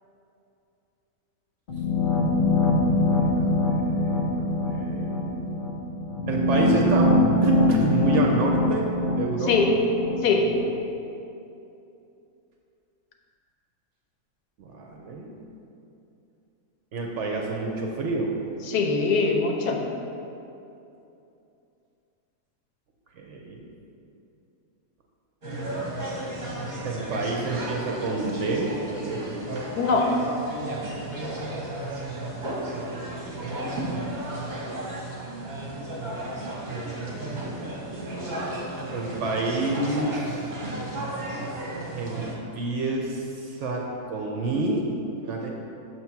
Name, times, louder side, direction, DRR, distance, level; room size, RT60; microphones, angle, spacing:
sound 1, 1.7-10.6, left 1 dB, 60° left, 0.5 m, -23 dB
voice 1, 3.1-4.3 4.7-5.6 6.3-7.1 7.4-8.9 9.2-9.8 14.6-15.3 16.9-18.3 23.2-23.6 26.8-29.5 35.7-36.5 37.1-38.6 38.9-40.1 42.0-42.3 42.5-44.9 45.2-45.5, right 2 dB, 65° right, 0 dB, 0.8 m, -29 dB
voice 2, 18.6-19.8 29.8-30.1, left 4 dB, 85° left, 2 dB, 1.2 m, -22 dB
sound 2, 25.4-42.4, right 1 dB, 35° right, 0.8 m, -33 dB
6.5 x 3.0 x 5.7 m, 2.8 s
omnidirectional pair, 1.6 m